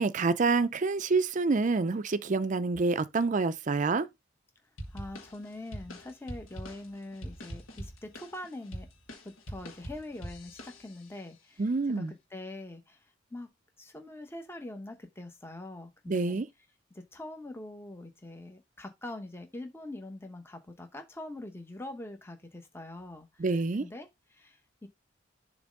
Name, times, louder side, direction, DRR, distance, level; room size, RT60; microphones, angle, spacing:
voice 1, 0.0-4.1 11.6-12.1 16.1-16.5 23.4-23.8, right 3 dB, 40° right, 0.4 m, -27 dB
sound 1, 4.8-11.2, equal, 85° left, 1.7 m, -44 dB
voice 2, 4.9-8.9 9.2-13.0 13.3-13.5 13.8-16.4 16.9-24.9, left 1 dB, 10° left, 0.9 m, -44 dB
7.0 x 3.1 x 5.2 m
head